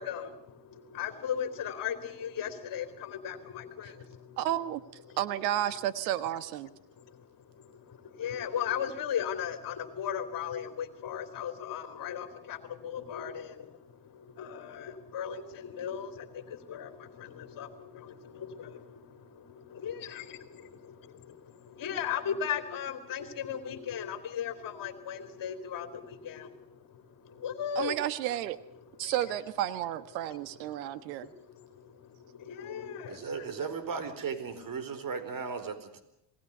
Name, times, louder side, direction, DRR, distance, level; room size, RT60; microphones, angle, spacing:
voice 1, 0.0-4.4 5.1-5.2 7.0-28.0 29.0-29.2 30.6-33.5, left 8 dB, 45° left, 8 dB, 3.1 m, -38 dB
voice 2, 4.4-4.8 5.2-6.7 27.7-28.6 29.0-31.3, right 12 dB, 85° right, 14 dB, 1.6 m, -32 dB
voice 3, 33.1-36.0, right 5 dB, 40° right, 12 dB, 4.6 m, -36 dB
27.5 x 19.5 x 6.8 m, 0.82 s
supercardioid pair, 80°, 49 cm